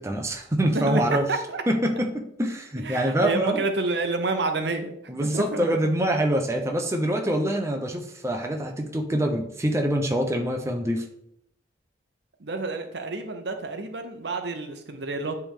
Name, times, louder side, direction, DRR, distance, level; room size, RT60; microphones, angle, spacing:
voice 1, 0.0-1.2 1.7-3.6 5.1-11.1, right 1 dB, 15° right, 3 dB, 0.6 m, -25 dB
voice 2, 1.3-1.6 2.8-4.9 5.2-5.7 12.4-15.4, right 3 dB, 65° right, 6 dB, 0.8 m, -29 dB
9.9 x 3.5 x 3.6 m, 0.74 s
head